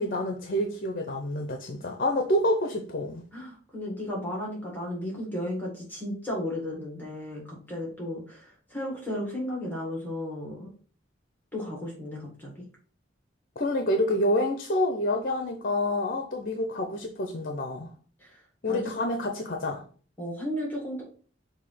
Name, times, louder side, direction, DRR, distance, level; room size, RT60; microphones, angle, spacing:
voice 1, 0.0-3.2 13.6-17.9 18.6-19.8, left 1 dB, 50° left, 0.8 m, -28 dB
voice 2, 3.3-10.7 11.5-12.7 18.2-18.4 18.7-18.8 20.2-21.0, left 1 dB, 10° left, 1.9 m, -34 dB
6.5 x 2.8 x 5.6 m
head